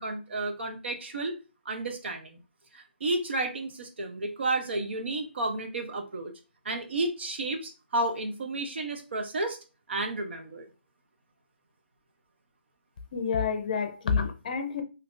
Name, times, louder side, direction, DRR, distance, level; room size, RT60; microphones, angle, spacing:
voice 1, 0.0-1.4 1.6-2.4 2.7-6.3 6.6-9.6 9.9-10.7, right 2 dB, 70° right, 0.7 m, -32 dB
voice 2, 13.1-14.8, left 6 dB, 45° left, 0.6 m, -28 dB
2.7 x 2.5 x 3.6 m
hypercardioid pair, 165°, 6 cm